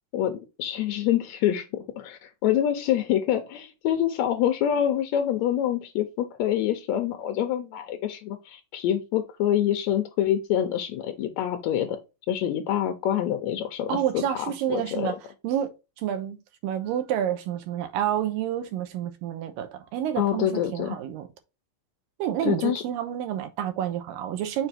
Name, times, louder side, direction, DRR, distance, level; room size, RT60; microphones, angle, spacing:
voice 1, 0.1-12.0 12.3-14.2 14.7-15.1 20.2-21.0 22.4-22.8, left 11 dB, 85° left, 1.6 m, -26 dB
voice 2, 13.9-15.2 15.4-21.3 22.2-24.7, right 10 dB, 80° right, 2.5 m, -29 dB
7.0 x 3.5 x 4.1 m
omnidirectional pair, 4.1 m